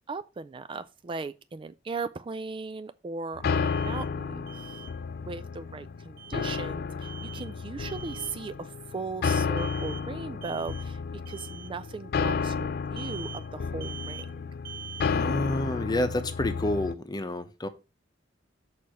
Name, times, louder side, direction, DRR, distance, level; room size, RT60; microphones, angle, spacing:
voice 1, 0.1-4.8 5.3-11.0 11.3-14.5, right 4 dB, 25° right, 0.3 m, -38 dB
sound 1, 3.4-16.9, left 5 dB, 55° left, 0.4 m, -32 dB
Alarm, 3.6-4.1 4.5-4.9 6.2-6.6 7.0-7.5 7.9-8.4 9.6-10.1 10.4-10.9 11.3-11.7 13.0-13.5 13.8-14.3 14.7-15.1, right 9 dB, 55° right, 1.0 m, -44 dB
voice 2, 15.0-17.7, left 1 dB, 20° left, 0.9 m, -29 dB
6.6 x 4.2 x 6.4 m
head